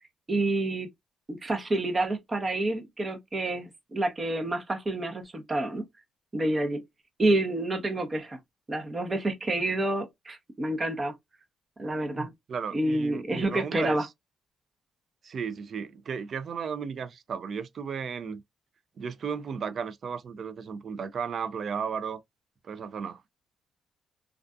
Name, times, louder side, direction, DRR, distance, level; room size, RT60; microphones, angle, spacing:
voice 1, 0.3-0.9 1.3-5.9 6.3-6.8 7.2-8.4 8.7-11.1 11.8-12.3 12.7-14.0, right 2 dB, 30° right, 0.7 m, -28 dB
voice 2, 12.2-14.1 15.2-18.4 19.0-22.2 22.6-23.2, right 6 dB, 55° right, 0.4 m, -34 dB
2.5 x 2.3 x 2.2 m
cardioid pair, 90°, 0 cm